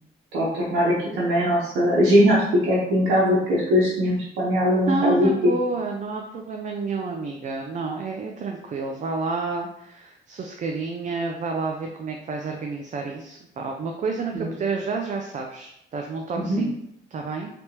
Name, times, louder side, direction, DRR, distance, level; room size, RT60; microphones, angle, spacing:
voice 1, 0.3-5.3 14.3-14.5 16.5-16.6, equal, 80° right, -7 dB, 1.0 m, -20 dB
voice 2, 4.9-16.8 17.1-17.5, right 4 dB, 40° right, 2 dB, 0.4 m, -29 dB
3.4 x 2.9 x 2.8 m, 0.77 s
cardioid pair, 90°, 20 cm